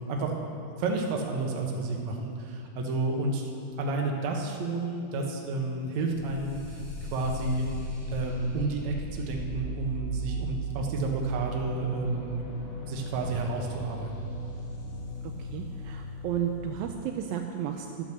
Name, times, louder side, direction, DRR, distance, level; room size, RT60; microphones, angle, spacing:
voice 1, 0.1-3.5 3.8-6.8 7.1-7.7 8.1-12.5 12.9-14.3, right 3 dB, 60° right, 1 dB, 2.2 m, -31 dB
sound 1, 6.1-16.8, right 1 dB, 50° left, 3.6 m, -38 dB
voice 2, 15.5-18.0, right 9 dB, 80° right, 4 dB, 2.3 m, -33 dB
12.0 x 9.1 x 6.7 m, 2.5 s
omnidirectional pair, 4.3 m